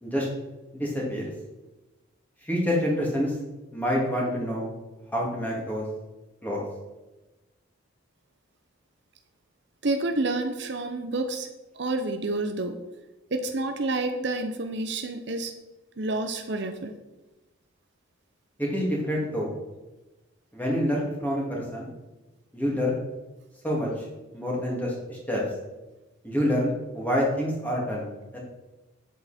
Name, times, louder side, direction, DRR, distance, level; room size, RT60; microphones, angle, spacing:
voice 1, 0.7-1.3 2.4-3.3 3.7-4.7 5.1-5.8 6.4-6.6 18.6-19.5 20.5-21.9 22.5-23.0 23.6-24.0 24.3-25.4 26.2-28.4, equal, 10° left, -3 dB, 2.4 m, -27 dB
voice 2, 9.8-11.5 11.8-12.8 13.3-15.5 16.0-16.9, right 2 dB, 55° right, 6 dB, 0.7 m, -29 dB
8.5 x 7.8 x 4.3 m, 1.1 s
head